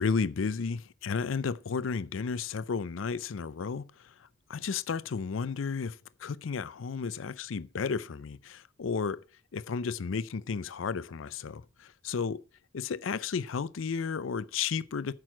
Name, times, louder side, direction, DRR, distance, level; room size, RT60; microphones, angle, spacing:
voice 1, 0.0-9.2 9.5-12.4 12.7-15.1, left 5 dB, 85° left, 0.5 m, -33 dB
9.2 x 6.2 x 7.3 m
head